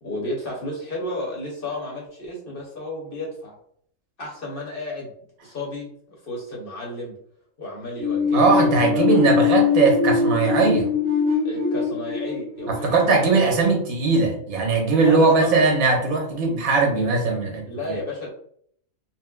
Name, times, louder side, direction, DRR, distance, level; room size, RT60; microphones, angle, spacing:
voice 1, 0.0-3.5 4.2-5.1 5.4-7.1 7.6-9.1 11.4-13.5 14.9-15.6 17.6-18.3, left 1 dB, 45° left, -3 dB, 1.0 m, -32 dB
sound 1, 8.0-13.7, left 5 dB, 50° right, 0.9 m, -22 dB
voice 2, 8.3-10.9 12.7-17.9, right 3 dB, 80° right, 0 dB, 1.3 m, -19 dB
4.2 x 2.1 x 2.2 m, 0.63 s
omnidirectional pair, 1.5 m